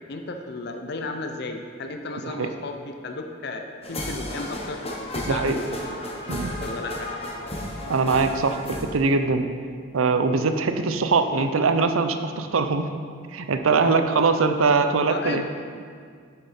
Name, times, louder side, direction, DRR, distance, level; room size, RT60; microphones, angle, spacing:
voice 1, 0.1-4.8 5.1-5.6 6.6-7.1 13.8-14.0 15.1-15.5, left 3 dB, 50° left, 5 dB, 0.5 m, -34 dB
sound 1, 3.8-8.8, left 1 dB, 30° left, 1.0 m, -33 dB
voice 2, 7.9-9.4 9.9-12.9 13.3-15.5, right 4 dB, 75° right, 8 dB, 0.6 m, -22 dB
6.9 x 6.7 x 5.6 m, 2.1 s
head